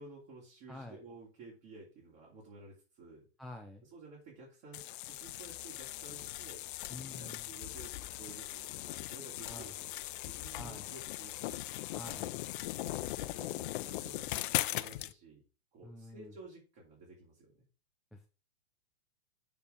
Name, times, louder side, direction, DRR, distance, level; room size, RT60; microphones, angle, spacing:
voice 1, 0.0-3.3 3.8-6.6 7.2-11.8 12.9-15.4 15.7-17.6, right 3 dB, 40° right, -4 dB, 2.9 m, -53 dB
voice 2, 0.7-1.0 3.4-3.8 6.9-7.6 9.5-9.7 10.5-10.9 11.9-12.4 15.8-16.3 18.1-18.3, left 1 dB, ahead, 2 dB, 0.4 m, -48 dB
sound 1, 4.7-15.1, left 16 dB, 55° left, 0.5 m, -39 dB
7.0 x 4.6 x 5.0 m, 0.34 s
hypercardioid pair, 140°, 31 cm